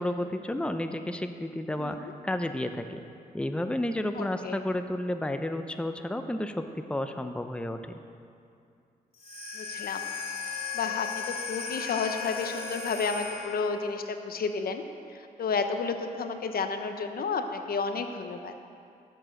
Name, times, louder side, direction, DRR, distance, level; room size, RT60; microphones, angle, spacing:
voice 1, 0.0-3.0 3.3-8.0, left 1 dB, 5° left, 7 dB, 0.7 m, -31 dB
voice 2, 1.8-2.1 4.2-4.6 9.5-10.0 10.7-14.8 15.4-18.5, left 5 dB, 70° left, 6 dB, 0.9 m, -31 dB
sound 1, 9.1-13.9, left 5 dB, 40° left, 2.6 m, -36 dB
13.5 x 7.8 x 6.5 m, 2.5 s
cardioid pair, 75°, 16 cm